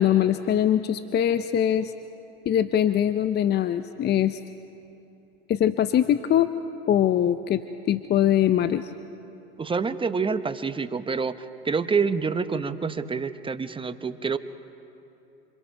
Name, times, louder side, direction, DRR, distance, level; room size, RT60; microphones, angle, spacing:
voice 1, 0.0-1.9 2.5-4.4 5.5-6.5 6.9-7.6 7.9-8.9, left 10 dB, 35° left, 11 dB, 0.7 m, -22 dB
voice 2, 9.6-11.4 11.6-14.4, right 5 dB, 15° right, 12 dB, 1.0 m, -27 dB
27.5 x 27.0 x 4.6 m, 2.9 s
hypercardioid pair, 85°, 31 cm